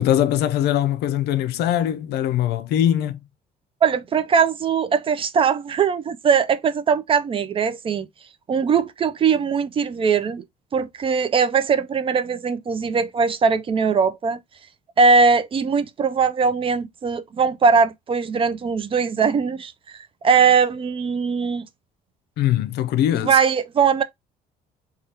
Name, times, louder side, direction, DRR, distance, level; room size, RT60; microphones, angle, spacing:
voice 1, 0.0-3.2 22.4-23.4, left 11 dB, 75° left, 0.5 m, -21 dB
voice 2, 3.8-8.1 8.5-10.4 10.7-14.4 15.0-21.7 23.1-24.0, right 5 dB, 30° right, 0.4 m, -20 dB
3.3 x 2.3 x 2.7 m
cardioid pair, 110°, 17 cm